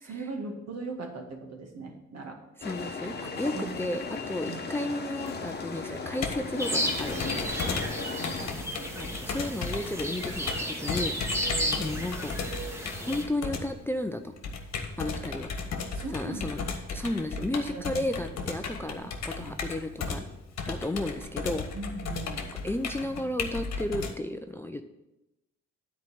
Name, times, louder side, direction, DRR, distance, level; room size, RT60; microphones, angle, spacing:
voice 1, 0.0-2.4 3.5-3.7 4.5-4.6 6.4-6.5 8.2-8.9 11.5-11.9 15.9-16.7 17.4-18.4 19.4-19.5 21.7-22.4, right 3 dB, 60° right, 2 dB, 2.1 m, -40 dB
sound 1, 2.6-8.5, left 4 dB, 35° left, 1.2 m, -36 dB
voice 2, 2.6-7.8 9.0-11.2 11.8-12.3 13.0-14.3 15.0-15.5 16.1-16.6 16.9-20.3 20.7-21.7 22.6-24.9, left 1 dB, 10° left, 7 dB, 0.5 m, -33 dB
Computer keyboard, 5.3-24.1, left 5 dB, 60° left, 1.4 m, -35 dB
sound 2, 6.6-13.2, equal, 10° right, 1.6 m, -33 dB
9.6 x 4.6 x 7.1 m, 0.95 s
cardioid pair, 90°, 30 cm